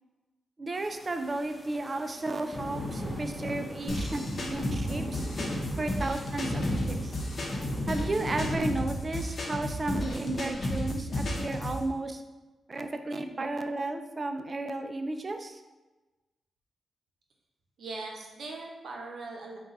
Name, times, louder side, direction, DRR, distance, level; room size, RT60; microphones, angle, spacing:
voice 1, 0.6-5.3 5.8-7.1 7.9-12.2 12.7-15.6, right 2 dB, 35° right, 7 dB, 0.3 m, -33 dB
sound 1, 0.8-8.6, left 1 dB, 20° left, 0.8 m, -37 dB
sound 2, 3.9-11.8, left 1 dB, 55° left, 0.8 m, -33 dB
voice 2, 17.8-19.6, right 3 dB, 75° right, 0 dB, 0.7 m, -40 dB
3.8 x 2.3 x 4.0 m, 1.2 s
cardioid pair, 90°, 0 cm